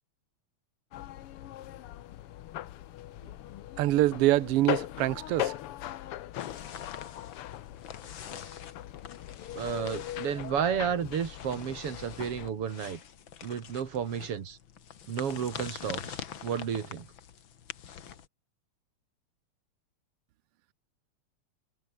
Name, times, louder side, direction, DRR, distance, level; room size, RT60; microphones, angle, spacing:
sound 1, 0.9-12.5, left 13 dB, 65° left, 1.5 m, -39 dB
voice 1, 3.8-5.5, right 16 dB, 80° right, 1.4 m, -25 dB
sound 2, 6.4-18.3, left 8 dB, 50° left, 1.9 m, -45 dB
voice 2, 9.5-13.0 13.4-14.6 15.1-17.1, right 8 dB, 55° right, 2.9 m, -32 dB
omnidirectional pair, 3.3 m